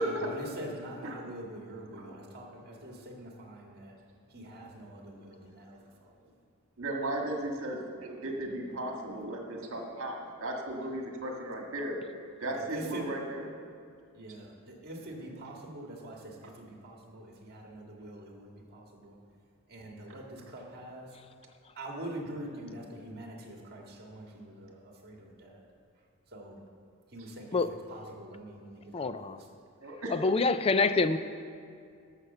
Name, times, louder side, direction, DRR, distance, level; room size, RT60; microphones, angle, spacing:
voice 1, 0.0-4.0 4.3-6.3 12.5-13.1 14.1-19.2 19.7-21.2 21.8-25.6 26.3-26.6 27.1-29.5 30.9-31.0, right 1 dB, 45° right, 0 dB, 1.9 m, -44 dB
voice 2, 1.9-2.2 6.8-12.0 12.4-13.5 29.8-30.4, right 1 dB, 60° right, 1 dB, 1.7 m, -35 dB
voice 3, 28.9-29.4 30.1-31.2, left 4 dB, 25° left, 12 dB, 0.4 m, -26 dB
13.0 x 5.8 x 6.8 m, 2.3 s
head